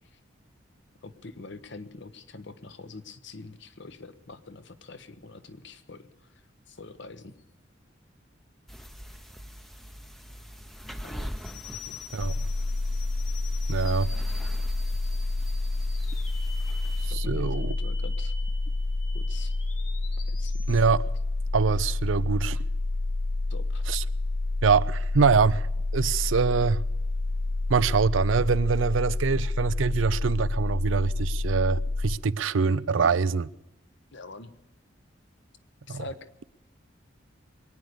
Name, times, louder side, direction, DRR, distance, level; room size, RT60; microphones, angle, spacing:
voice 1, 1.0-6.1 6.7-7.3 11.0-11.3 11.9-12.0 17.1-18.3 19.1-19.5 20.3-20.7 23.5-23.8 34.1-34.5 35.9-36.3, left 3 dB, 70° left, 1.1 m, -44 dB
sound 1, 8.7-17.1, equal, ahead, 0.7 m, -43 dB
sound 2, 12.2-32.2, left 2 dB, 35° left, 0.5 m, -28 dB
sound 3, 12.8-20.8, left 5 dB, 90° left, 2.5 m, -46 dB
voice 2, 13.7-14.1 17.0-17.7 20.7-21.0 21.5-22.6 23.9-24.0 24.6-25.7 25.9-26.8 27.7-33.5 35.9-36.0, right 5 dB, 90° right, 0.5 m, -24 dB
22.5 x 9.4 x 6.7 m
head